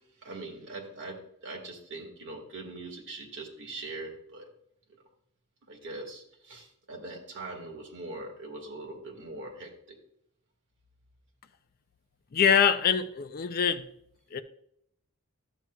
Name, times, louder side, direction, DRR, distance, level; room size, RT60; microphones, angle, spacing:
voice 1, 0.0-4.5 5.7-10.0, right 2 dB, 55° right, 1.8 m, -42 dB
voice 2, 12.3-13.9 14.3-14.4, left 7 dB, 40° left, 0.4 m, -24 dB
11.5 x 7.6 x 2.3 m
head